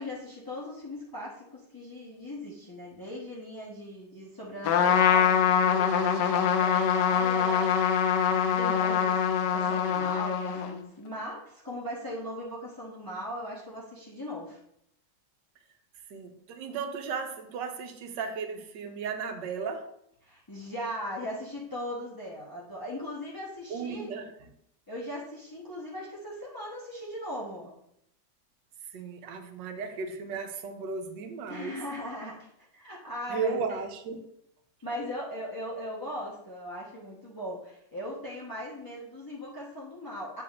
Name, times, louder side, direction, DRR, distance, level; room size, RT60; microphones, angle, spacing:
voice 1, 0.0-14.6 20.2-24.1 24.9-27.7 31.5-33.8 34.8-40.4, equal, 20° left, -6 dB, 0.5 m, -39 dB
Trumpet, 4.6-10.8, left 8 dB, 75° left, 1.2 m, -24 dB
voice 2, 16.1-19.8 23.7-24.3 28.9-31.8 33.3-34.2, right 5 dB, 80° right, 6 dB, 1.4 m, -35 dB
7.7 x 5.8 x 2.4 m, 0.76 s
omnidirectional pair, 2.0 m